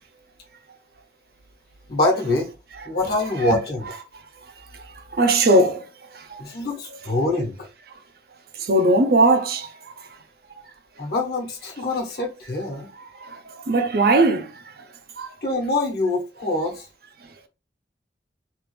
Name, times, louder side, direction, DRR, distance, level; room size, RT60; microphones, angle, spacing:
voice 1, 1.9-2.5 2.8-4.0 6.4-7.7 11.0-12.9 15.4-16.9, left 2 dB, 55° left, 1.1 m, -24 dB
voice 2, 5.1-5.8 6.3-6.4 8.7-9.7 13.7-14.5 15.2-15.3, right 2 dB, 55° right, 0.5 m, -18 dB
3.3 x 2.4 x 3.2 m
head